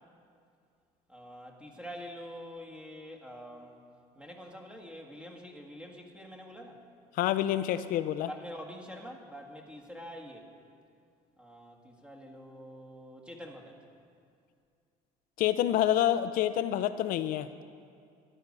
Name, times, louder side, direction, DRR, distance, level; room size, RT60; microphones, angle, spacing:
voice 1, 1.1-3.8 4.1-6.8 8.3-10.5 11.4-13.8, equal, 5° right, 2 dB, 1.6 m, -46 dB
voice 2, 7.1-8.3 15.4-17.6, left 12 dB, 65° left, 12 dB, 0.5 m, -28 dB
13.5 x 11.0 x 5.3 m, 2.3 s
cardioid pair, 125°, 16 cm